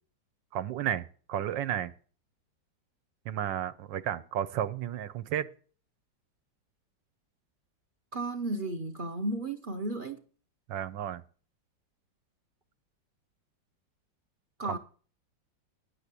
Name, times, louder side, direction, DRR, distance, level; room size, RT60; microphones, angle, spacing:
voice 1, 0.5-1.9 3.2-5.5 10.7-11.2 14.7-14.8, right 10 dB, 80° right, 1.4 m, -32 dB
voice 2, 8.1-10.2 14.6-14.8, right 2 dB, 45° right, 0.6 m, -33 dB
10.0 x 7.4 x 8.2 m
omnidirectional pair, 2.0 m